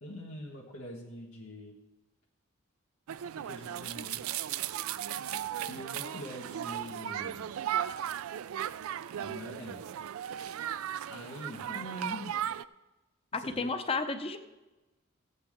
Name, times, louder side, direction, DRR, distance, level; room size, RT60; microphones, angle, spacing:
voice 1, 0.0-1.8 3.3-4.3 5.7-7.6 9.2-10.0 11.1-11.7 13.3-13.7, left 1 dB, 90° left, -3 dB, 1.6 m, -44 dB
sound 1, 3.1-12.6, right 10 dB, 85° right, 0.3 m, -36 dB
voice 2, 11.7-12.3 13.3-14.4, left 3 dB, 25° left, 8 dB, 0.7 m, -34 dB
15.0 x 8.4 x 3.6 m, 1.1 s
head